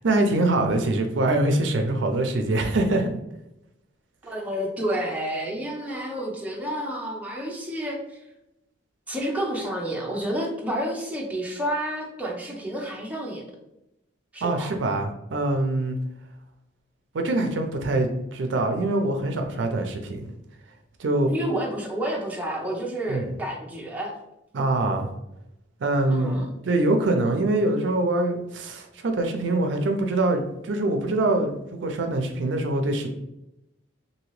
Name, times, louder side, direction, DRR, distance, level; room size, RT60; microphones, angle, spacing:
voice 1, 0.0-3.1 14.4-16.0 17.1-20.3 21.0-21.3 23.1-23.3 24.5-25.1 25.8-33.1, right 2 dB, 75° right, 5 dB, 0.5 m, -24 dB
voice 2, 4.2-8.2 9.1-13.4 14.3-14.7 21.3-24.1 26.1-26.5, right 1 dB, 10° right, -2 dB, 0.6 m, -30 dB
2.8 x 2.7 x 3.0 m, 0.89 s
head